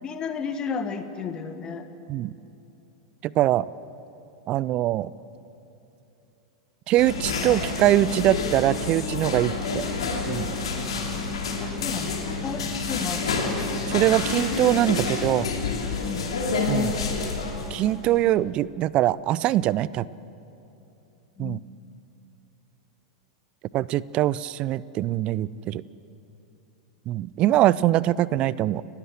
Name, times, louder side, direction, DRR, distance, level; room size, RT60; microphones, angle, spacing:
voice 1, 0.0-1.8 11.6-13.6 16.0-16.3 21.4-21.6, left 6 dB, 25° left, 8 dB, 1.5 m, -33 dB
voice 2, 3.2-3.7 4.5-5.1 6.9-9.8 10.3-10.5 13.9-15.5 16.7-17.0 17.7-20.1 21.4-21.6 23.7-25.8 27.1-28.8, right 14 dB, 35° right, 21 dB, 0.4 m, -23 dB
sound 1, 7.0-18.1, left 4 dB, 65° left, 2.9 m, -28 dB
29.5 x 12.0 x 7.6 m, 2.9 s
figure-of-eight pair, 90°, 3 cm